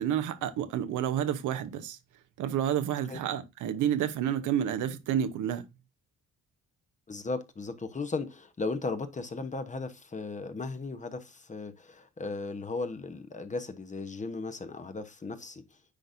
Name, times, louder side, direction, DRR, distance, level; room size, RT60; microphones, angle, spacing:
voice 1, 0.0-2.0 2.4-5.6, right 10 dB, 85° right, 0.9 m, -30 dB
voice 2, 7.1-15.6, left 3 dB, 25° left, 1.0 m, -36 dB
9.9 x 4.0 x 2.6 m
cardioid pair, 90°, 30 cm